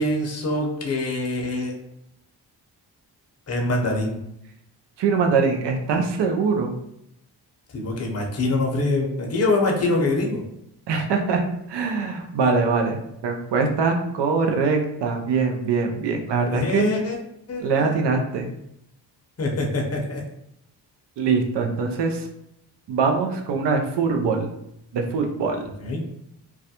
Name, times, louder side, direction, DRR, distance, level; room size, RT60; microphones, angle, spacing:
voice 1, 0.0-1.7 3.5-4.2 7.7-10.4 16.4-17.2 17.5-18.0 19.4-20.2 25.8-26.0, left 2 dB, 35° left, 0 dB, 0.7 m, -24 dB
voice 2, 5.0-6.8 10.9-16.9 17.6-18.5 21.2-22.3 22.9-24.5 24.9-25.6, right 4 dB, 70° right, 4 dB, 0.6 m, -23 dB
2.3 x 2.1 x 2.8 m, 0.80 s
supercardioid pair, 45°, 44 cm